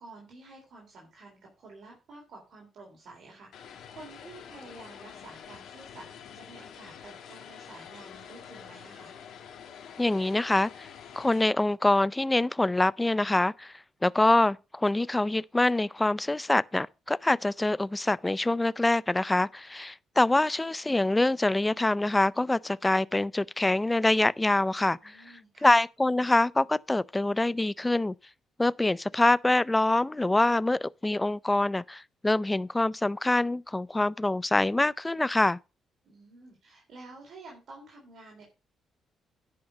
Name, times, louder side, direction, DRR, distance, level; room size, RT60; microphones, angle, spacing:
voice 1, 0.0-9.2 25.0-25.8 36.0-38.5, right 2 dB, 65° right, 3.6 m, -50 dB
Vehicle, 3.5-11.5, left 8 dB, 75° left, 1.8 m, -47 dB
voice 2, 10.0-10.9 11.1-13.7 14.0-25.2 25.6-28.1 28.6-35.6, left 2 dB, 15° left, 0.4 m, -25 dB
10.5 x 5.7 x 5.2 m
cardioid pair, 90°, 0 cm